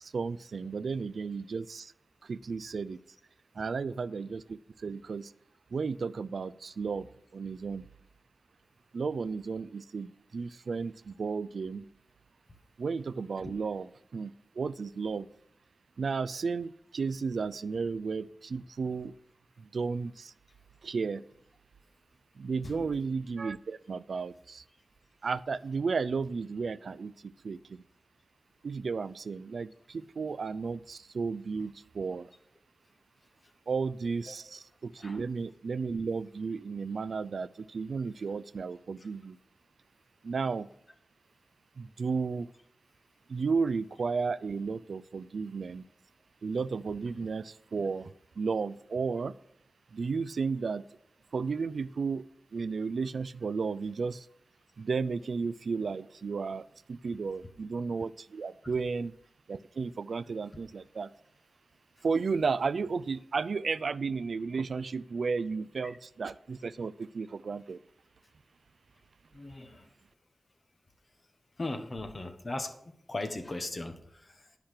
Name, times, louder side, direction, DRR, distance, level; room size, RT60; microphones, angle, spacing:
voice 1, 0.0-1.9 2.2-3.0 3.6-5.3 5.7-7.9 8.9-11.9 12.8-15.3 16.0-19.1 19.6-20.3 20.8-21.2 22.4-24.6 25.2-27.8 28.6-32.3 33.7-39.4 40.2-40.7 41.8-42.5 43.3-45.8 46.4-48.1 48.4-49.3 49.9-50.8 51.3-52.2 52.5-54.3 54.8-59.1 59.5-61.1 62.0-67.8, right 5 dB, 80° right, 15 dB, 0.4 m, -33 dB
voice 2, 69.3-69.9 71.6-74.6, left 2 dB, 40° left, 6 dB, 1.3 m, -39 dB
10.5 x 5.8 x 6.6 m, 0.71 s
wide cardioid pair, 95°, 0 cm